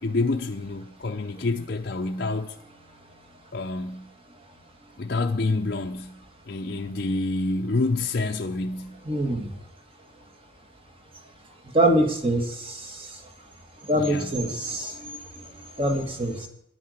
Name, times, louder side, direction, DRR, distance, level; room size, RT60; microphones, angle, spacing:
voice 1, 0.0-2.5 3.5-4.1 5.0-9.0 13.9-14.4, left 3 dB, 50° left, 0.6 m, -28 dB
voice 2, 9.1-9.5 11.7-13.2 13.9-15.2 15.8-16.5, right 1 dB, 25° right, 1.7 m, -24 dB
11.0 x 9.4 x 6.4 m
head